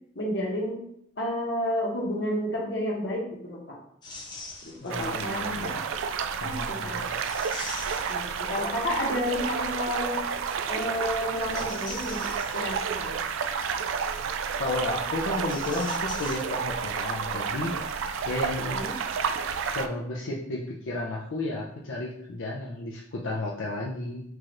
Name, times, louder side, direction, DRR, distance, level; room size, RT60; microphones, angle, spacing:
voice 1, 0.1-0.7 1.2-3.8 4.6-5.5 6.4-7.0 8.1-8.2 8.5-10.2 10.7-12.2 12.5-13.2 18.7-18.9, left 1 dB, 60° left, -3 dB, 1.1 m, -30 dB
sound 1, 4.0-5.1 7.1-8.9 11.2-12.9 15.2-17.0 17.2-17.3 18.3-18.4, left 3 dB, 20° left, 0.6 m, -43 dB
voice 2, 4.8-5.8 6.4-7.1 14.6-17.7 18.3-18.8 19.7-24.2, left 2 dB, 90° left, -3 dB, 0.6 m, -32 dB
sound 2, 4.9-19.9, right 6 dB, 85° right, 0.3 m, -31 dB
4.7 x 2.5 x 3.0 m, 0.71 s
head